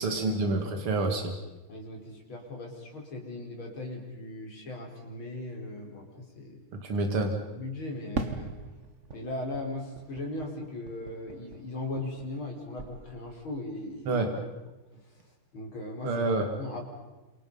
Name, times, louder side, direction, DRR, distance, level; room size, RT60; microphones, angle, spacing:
voice 1, 0.0-1.3 6.8-7.3 14.1-14.3 16.0-16.5, right 2 dB, 75° right, 4 dB, 3.2 m, -27 dB
voice 2, 1.7-6.6 7.5-8.5 9.1-14.2 14.9-15.0 15.5-16.1 16.6-16.9, left 2 dB, 70° left, 1 dB, 5.6 m, -38 dB
Fireworks, 8.1-12.5 12.8-13.6, right 3 dB, 35° right, 1.6 m, -40 dB
29.0 x 27.5 x 5.6 m, 1.1 s
omnidirectional pair, 2.4 m